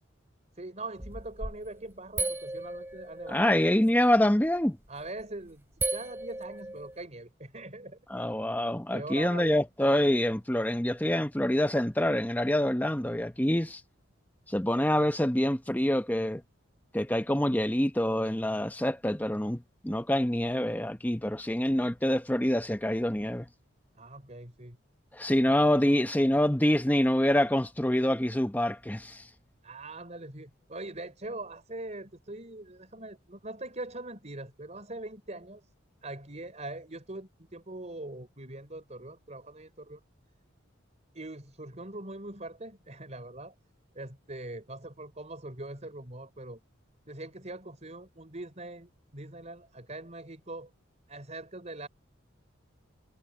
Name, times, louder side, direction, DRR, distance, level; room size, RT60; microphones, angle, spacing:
voice 1, 0.5-3.6 4.9-8.0 8.9-9.6 24.0-24.8 25.5-25.6 29.6-35.7 36.0-40.0 41.1-43.5 43.9-46.6 47.1-50.7 51.1-51.9, right 2 dB, 35° right, 4.8 m, -42 dB
sound 1, 1.0-1.7 2.2-3.9 5.0-5.2 5.8-7.0, right 2 dB, 10° right, 4.2 m, -35 dB
voice 2, 3.3-4.8 8.1-13.8 14.5-16.4 16.9-23.5 25.1-29.2, left 1 dB, 10° left, 0.9 m, -26 dB
head